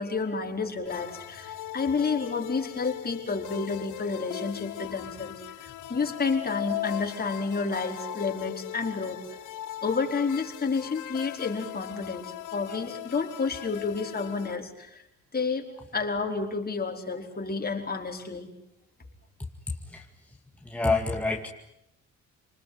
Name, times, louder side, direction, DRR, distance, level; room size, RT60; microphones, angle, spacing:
voice 1, 0.0-9.4 9.8-15.0 15.3-18.5, left 4 dB, 30° left, 2 dB, 4.9 m, -30 dB
sound 1, 0.9-14.6, left 14 dB, 85° left, 1.2 m, -39 dB
voice 2, 20.7-21.5, left 3 dB, 5° left, 2 dB, 2.3 m, -26 dB
29.0 x 20.5 x 9.6 m, 0.82 s
cardioid pair, 90°, 30 cm